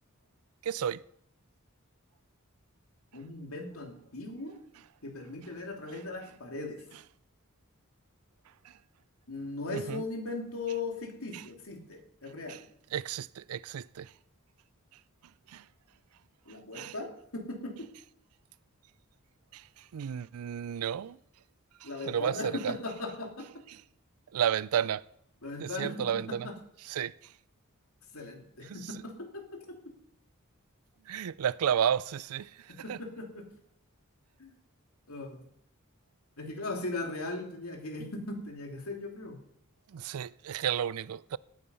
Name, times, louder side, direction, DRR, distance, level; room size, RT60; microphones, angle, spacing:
voice 1, 0.6-1.0 8.6-8.7 9.7-10.0 11.3-11.5 12.5-12.6 12.9-14.1 15.5-15.7 16.7-16.9 19.5-21.2 21.8-22.8 23.7-23.8 24.3-25.0 25.6-26.5 26.8-27.3 28.6-28.9 31.1-33.0 39.9-41.4, right 8 dB, 85° right, 0.4 m, -32 dB
voice 2, 3.1-4.6 5.0-6.8 9.3-12.6 16.5-17.9 21.8-23.5 25.4-26.6 28.1-29.8 32.7-33.5 34.4-34.5 35.1-35.5 36.4-39.4, left 2 dB, 80° left, 2.6 m, -38 dB
18.0 x 8.7 x 5.5 m
head